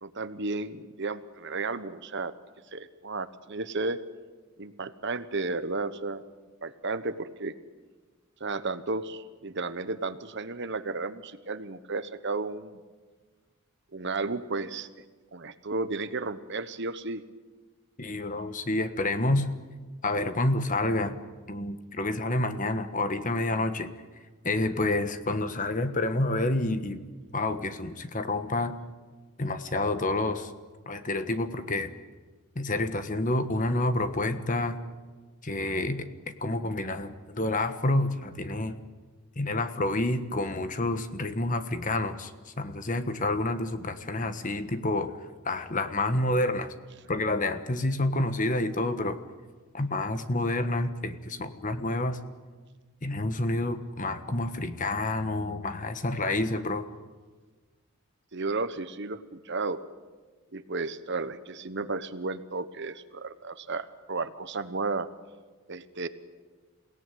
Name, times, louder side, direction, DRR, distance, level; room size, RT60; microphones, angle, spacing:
voice 1, 0.0-2.3 2.7-4.0 4.6-6.2 6.6-7.5 8.4-12.8 13.9-14.9 15.3-17.2 58.3-59.8 60.5-65.1 65.7-66.1, right 3 dB, 50° right, 12 dB, 1.1 m, -33 dB
voice 2, 18.0-19.5 20.0-21.2 21.5-23.9 24.4-27.0 27.3-28.8 29.4-30.5 30.9-31.9 32.5-34.8 35.4-36.1 36.4-38.7 39.4-45.1 45.4-46.7 47.1-49.2 49.7-52.2 53.0-56.9, left 2 dB, 35° left, 10 dB, 1.3 m, -28 dB
28.5 x 17.5 x 9.3 m, 1.4 s
head